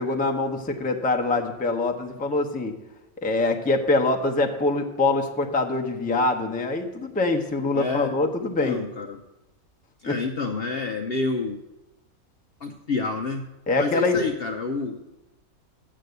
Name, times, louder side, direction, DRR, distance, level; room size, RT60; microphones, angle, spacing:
voice 1, 0.0-2.7 3.2-8.8 10.1-10.2 13.7-14.2, left 2 dB, 10° left, 3 dB, 0.5 m, -24 dB
voice 2, 7.7-8.2 8.6-9.2 10.0-11.6 12.6-13.4 13.8-15.0, left 3 dB, 55° left, 3 dB, 0.7 m, -28 dB
7.5 x 6.8 x 7.9 m, 0.97 s
omnidirectional pair, 1.6 m